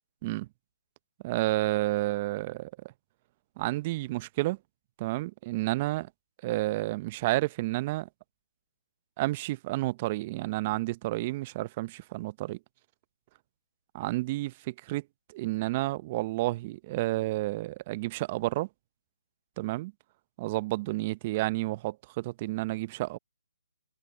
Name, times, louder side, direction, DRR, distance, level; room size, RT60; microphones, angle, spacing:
voice 1, 1.2-2.7 3.6-4.6 5.0-6.1 6.4-8.1 9.2-12.6 13.9-15.0 15.3-18.7 19.6-19.9 20.4-23.2, right 18 dB, 30° right, 0.7 m, -30 dB
open air
hypercardioid pair, 150°, 0 cm